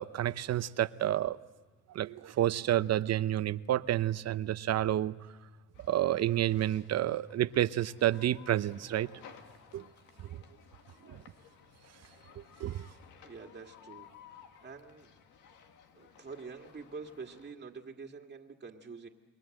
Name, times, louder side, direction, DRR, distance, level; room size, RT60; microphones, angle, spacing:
voice 1, 0.0-1.4 1.9-5.2 5.9-9.1 9.7-9.9 10.3-10.4 11.1-11.2 12.4-12.9, right 12 dB, 60° right, 0.7 m, -30 dB
sound 1, 5.7-17.5, left 7 dB, 85° left, 2.0 m, -57 dB
voice 2, 13.2-14.1 14.6-15.1 15.9-19.1, right 4 dB, 35° right, 2.0 m, -46 dB
28.5 x 21.5 x 7.8 m
cardioid pair, 90°, 30 cm